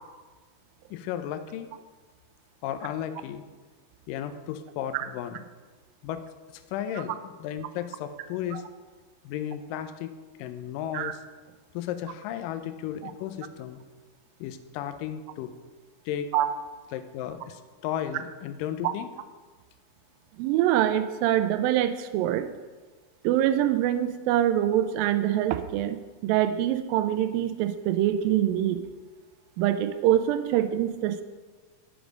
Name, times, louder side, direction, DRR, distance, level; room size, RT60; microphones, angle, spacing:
voice 1, 0.9-1.7 2.6-3.5 4.1-5.4 6.0-6.2 6.7-8.6 9.2-11.2 11.7-13.8 14.4-15.5 16.1-16.3 16.9-19.1, left 10 dB, 80° left, 8 dB, 2.0 m, -34 dB
voice 2, 20.4-22.5 23.2-28.8 29.6-31.2, right 12 dB, 85° right, 10 dB, 2.1 m, -24 dB
11.0 x 5.1 x 5.1 m, 1.3 s
omnidirectional pair, 4.5 m